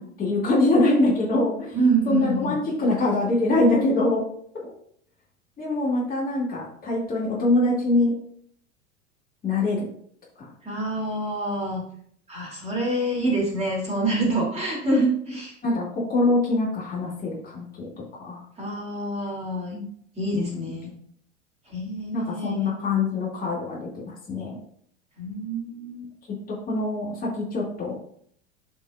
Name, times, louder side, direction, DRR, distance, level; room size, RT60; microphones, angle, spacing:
voice 1, 0.0-1.8 2.1-4.2 5.6-8.1 9.4-9.9 14.1-14.3 15.6-18.4 19.7-19.9 20.3-20.9 22.1-24.6 26.5-28.0, left 2 dB, 25° left, -5 dB, 2.5 m, -24 dB
voice 2, 1.7-2.6 10.6-11.8 12.3-15.5 18.6-19.8 20.2-20.9 21.7-22.7 25.2-26.0, right 2 dB, 15° right, -2 dB, 2.8 m, -26 dB
11.5 x 5.3 x 2.5 m, 0.63 s
figure-of-eight pair, 85°, 37 cm